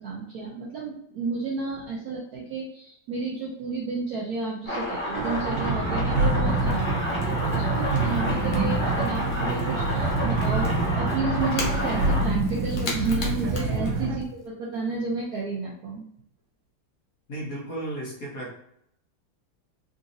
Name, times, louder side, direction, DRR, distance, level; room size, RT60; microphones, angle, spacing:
voice 1, 0.0-16.0, right 3 dB, 70° right, -3 dB, 0.9 m, -32 dB
sound 1, 4.7-12.3, equal, 5° left, 1.1 m, -30 dB
Crackle / Crack, 4.9-14.5, left 3 dB, 85° left, 1.6 m, -41 dB
sound 2, 5.1-14.2, right 3 dB, 85° right, 1.4 m, -26 dB
voice 2, 17.3-18.6, right 1 dB, 55° left, -4 dB, 1.2 m, -34 dB
3.8 x 2.6 x 2.6 m, 0.74 s
omnidirectional pair, 2.1 m